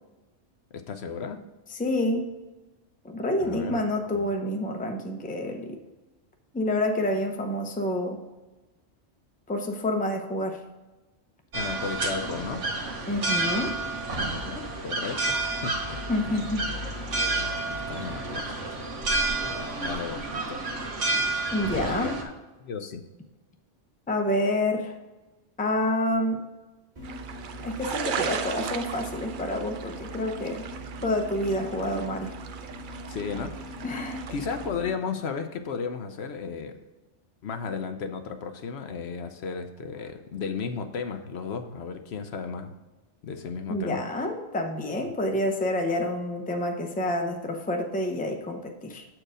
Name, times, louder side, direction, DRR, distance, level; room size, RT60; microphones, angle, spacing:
voice 1, 0.7-1.4 3.4-3.8 4.1-4.3 11.5-12.6 14.4-16.3 17.7-18.8 19.4-20.9 21.8-22.3 22.6-23.0 33.1-33.8 34.3-36.8 37.4-42.7 43.2-44.0, left 5 dB, 65° left, 7 dB, 0.8 m, -34 dB
voice 2, 1.7-2.3 3.0-5.8 6.5-8.2 9.5-10.6 13.1-13.8 16.1-16.6 21.5-22.1 24.1-24.9 25.6-26.4 27.6-30.6 31.0-32.3 33.8-34.3 43.7-49.0, left 1 dB, 10° left, 3 dB, 0.6 m, -28 dB
sound 1, 11.5-22.2, right 2 dB, 85° right, 1.5 m, -30 dB
sound 2, 27.0-35.0, right 1 dB, 40° right, 1.8 m, -41 dB
sound 3, 27.0-34.7, right 7 dB, 55° right, 0.6 m, -37 dB
7.7 x 4.6 x 4.9 m, 1.1 s
omnidirectional pair, 1.2 m